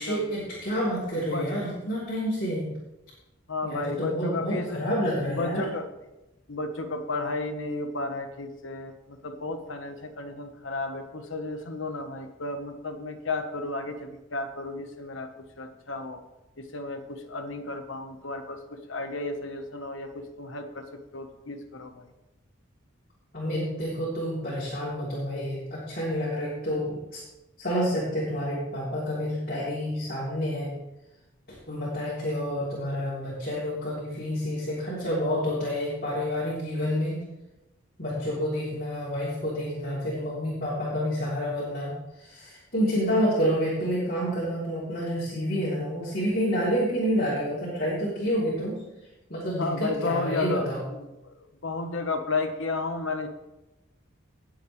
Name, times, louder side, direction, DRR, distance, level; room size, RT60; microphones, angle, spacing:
voice 1, 0.0-2.7 3.6-5.7 23.3-27.2 27.6-30.7 31.5-37.2 38.0-48.8 49.3-50.8, equal, 45° left, -8 dB, 3.4 m, -29 dB
voice 2, 1.2-1.5 3.5-4.8 5.3-5.9 6.5-16.2 16.6-22.1 49.6-51.3 51.6-53.3, left 3 dB, 70° left, 6 dB, 1.3 m, -33 dB
18.5 x 7.8 x 3.3 m, 0.98 s
head